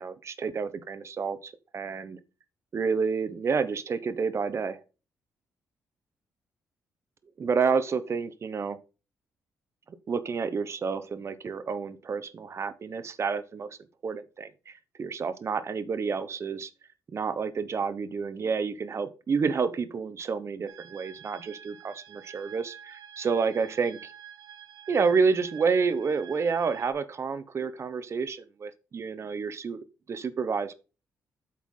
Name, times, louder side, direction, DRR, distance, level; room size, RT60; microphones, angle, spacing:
voice 1, 0.0-2.2 2.7-4.8 7.4-8.8 9.9-13.7 14.0-16.7 17.1-24.1 24.9-29.8 30.1-30.7, right 5 dB, 45° right, 1.0 m, -29 dB
sound 1, 20.7-26.9, right 9 dB, 75° right, 1.2 m, -48 dB
8.5 x 4.6 x 3.8 m
cardioid pair, 70°, 6 cm